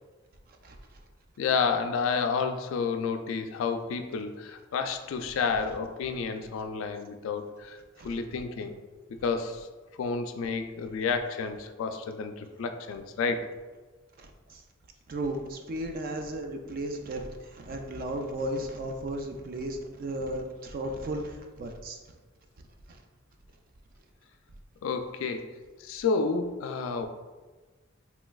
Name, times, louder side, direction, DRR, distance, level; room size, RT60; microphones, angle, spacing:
voice 1, 1.4-7.8 8.0-8.7 9.2-9.7 10.0-13.5 24.8-25.5 25.8-27.1, left 5 dB, 75° left, 8 dB, 0.3 m, -30 dB
voice 2, 14.2-14.6 15.1-22.0 22.9-23.0, right 1 dB, 45° right, 4 dB, 0.3 m, -35 dB
3.2 x 3.0 x 2.3 m, 1.3 s
head